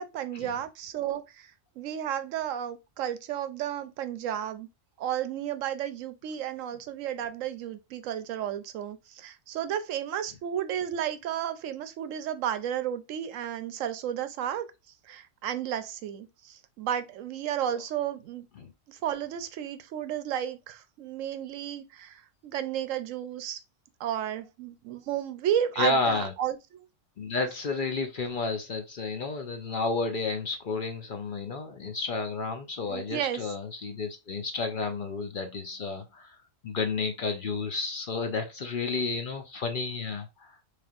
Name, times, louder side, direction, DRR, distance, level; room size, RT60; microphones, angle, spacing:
voice 1, 0.0-1.5 1.8-4.7 5.0-14.7 15.0-18.5 18.9-23.6 24.0-26.8 32.9-33.5, right 10 dB, 90° right, 1.0 m, -33 dB
voice 2, 25.7-26.3 27.2-36.4 36.6-40.6, left 3 dB, 50° left, 0.7 m, -31 dB
4.2 x 3.3 x 2.4 m
omnidirectional pair, 1.3 m